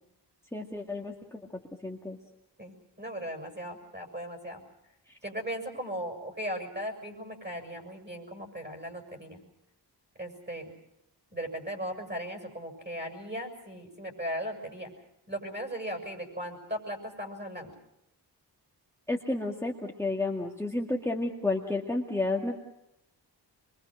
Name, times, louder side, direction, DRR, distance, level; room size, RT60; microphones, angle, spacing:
voice 1, 0.5-1.4 1.8-2.2 5.1-5.2 19.1-22.7, left 2 dB, 5° left, -1 dB, 2.0 m, -31 dB
voice 2, 2.6-4.6 5.2-9.4 10.2-10.8 11.3-14.9 15.3-17.7, equal, 25° right, 4 dB, 7.2 m, -37 dB
25.5 x 23.5 x 6.4 m, 0.82 s
wide cardioid pair, 90°, 42 cm